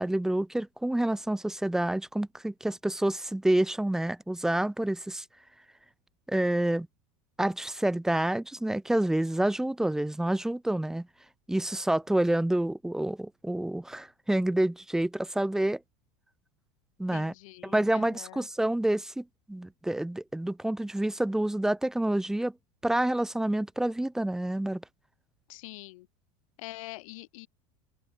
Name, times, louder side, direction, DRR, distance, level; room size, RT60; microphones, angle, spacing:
voice 1, 0.0-5.2 6.3-6.9 7.4-11.1 11.5-15.8 17.0-17.3 17.6-22.5 22.8-24.8, right 1 dB, 5° right, 0.4 m, -28 dB
voice 2, 17.1-18.5 25.5-26.1 26.6-27.5, left 21 dB, 80° left, 1.1 m, -44 dB
open air
supercardioid pair, 140°, 17 cm